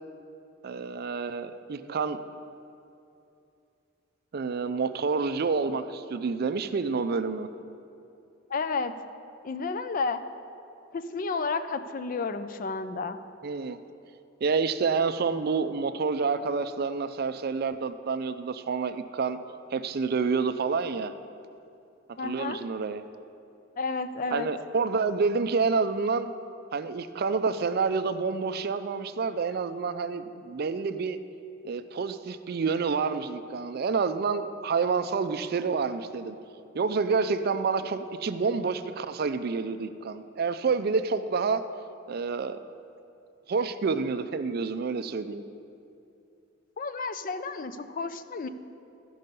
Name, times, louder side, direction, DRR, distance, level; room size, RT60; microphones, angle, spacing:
voice 1, 0.6-2.2 4.3-7.5 13.4-13.8 14.4-19.4 19.7-21.1 22.2-23.0 24.3-26.3 26.7-31.2 31.6-36.4 36.7-41.6 42.1-42.6 43.5-45.4, right 4 dB, 50° right, 11 dB, 0.4 m, -28 dB
voice 2, 8.5-8.9 9.4-10.2 10.9-13.2 22.2-22.6 23.8-24.5 46.8-48.5, left 4 dB, 45° left, 11 dB, 0.4 m, -31 dB
14.5 x 5.4 x 5.3 m, 2.6 s
head